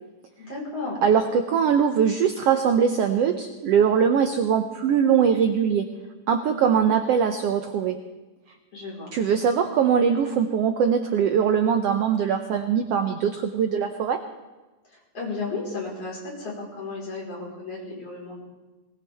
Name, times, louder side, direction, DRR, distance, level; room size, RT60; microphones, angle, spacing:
voice 1, 0.4-1.1 8.7-9.1 14.9-18.4, left 3 dB, 50° left, -3 dB, 5.4 m, -34 dB
voice 2, 1.0-5.9 6.3-8.0 9.1-14.2, right 7 dB, 70° right, 6 dB, 1.5 m, -21 dB
20.0 x 20.0 x 3.5 m, 1.1 s
omnidirectional pair, 3.6 m